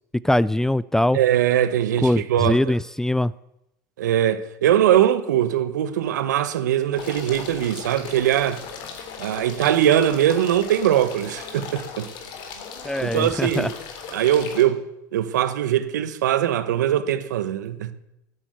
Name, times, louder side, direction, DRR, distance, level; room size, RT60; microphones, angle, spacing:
voice 1, 0.2-1.2 2.0-3.3 12.8-13.7, left 1 dB, 5° left, 0.4 m, -21 dB
voice 2, 1.1-2.8 4.0-8.6 9.2-12.1 13.0-13.7 14.1-14.8 15.1-17.9, right 11 dB, 85° right, 1.2 m, -21 dB
sound 1, 7.0-14.6, left 6 dB, 60° left, 3.4 m, -37 dB
13.5 x 9.9 x 8.1 m
hypercardioid pair, 90°, 9 cm